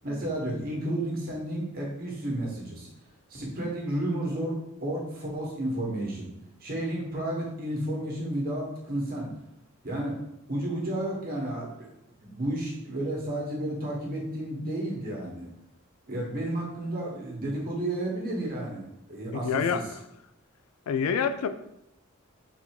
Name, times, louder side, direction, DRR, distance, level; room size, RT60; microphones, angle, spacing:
voice 1, 0.0-2.9 3.3-6.3 6.6-9.3 9.8-10.2 10.5-11.9 12.2-15.5 16.1-19.8, right 1 dB, 45° right, -3 dB, 1.3 m, -32 dB
voice 2, 19.4-20.0 20.9-21.5, left 6 dB, 85° left, 10 dB, 0.4 m, -27 dB
4.0 x 2.7 x 4.6 m, 0.84 s
head